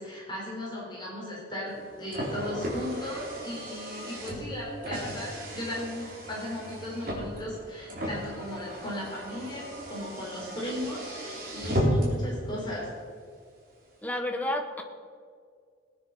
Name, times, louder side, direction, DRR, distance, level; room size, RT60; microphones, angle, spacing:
voice 1, 0.0-13.0, left 1 dB, 25° left, -4 dB, 4.1 m, -36 dB
Car, 1.7-12.3, equal, 50° right, 3.9 m, -34 dB
voice 2, 14.0-14.8, left 1 dB, 10° left, 4 dB, 1.3 m, -30 dB
19.0 x 9.5 x 5.6 m, 2.1 s
head